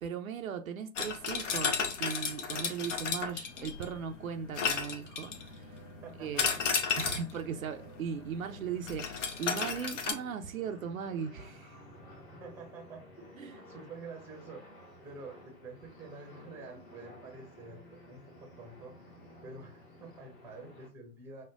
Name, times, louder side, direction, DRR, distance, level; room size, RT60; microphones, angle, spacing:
voice 1, 0.0-5.7 6.2-6.5 7.0-11.8 13.4-13.9, right 7 dB, 60° right, 0.6 m, -38 dB
sound 1, 1.0-4.0 4.6-5.5 6.4-7.4 8.9-10.1, left 6 dB, 50° left, 0.8 m, -32 dB
sound 2, 1.3-20.9, left 1 dB, 25° left, 1.0 m, -53 dB
voice 2, 6.0-6.6 12.4-14.6 15.0-19.1 19.4-21.4, right 3 dB, 5° right, 0.7 m, -48 dB
6.3 x 2.2 x 2.4 m
figure-of-eight pair, 115°, 47 cm